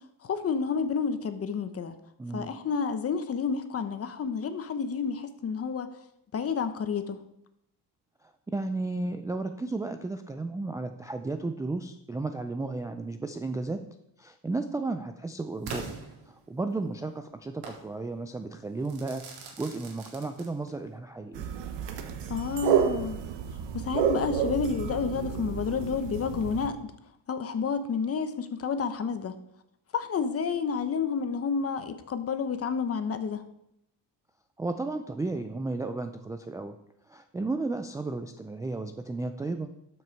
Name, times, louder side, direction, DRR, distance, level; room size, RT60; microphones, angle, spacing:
voice 1, 0.2-1.9 2.3-5.9 6.3-7.2 22.3-23.2 23.7-26.9 27.3-29.3 29.9-33.4, left 5 dB, 35° left, 10 dB, 0.9 m, -30 dB
voice 2, 2.2-2.5 8.2-13.8 14.2-15.9 16.3-19.2 19.6-21.4 34.6-36.8 37.1-39.7, right 3 dB, 10° right, 6 dB, 0.3 m, -33 dB
Crackle / Fireworks, 15.7-16.8 17.6-17.9 18.9-20.9, right 4 dB, 65° right, 2.2 m, -42 dB
sound 1, 21.3-26.7, right 8 dB, 80° right, 1.2 m, -30 dB
12.5 x 6.3 x 4.5 m, 0.79 s
cardioid pair, 140°, 42 cm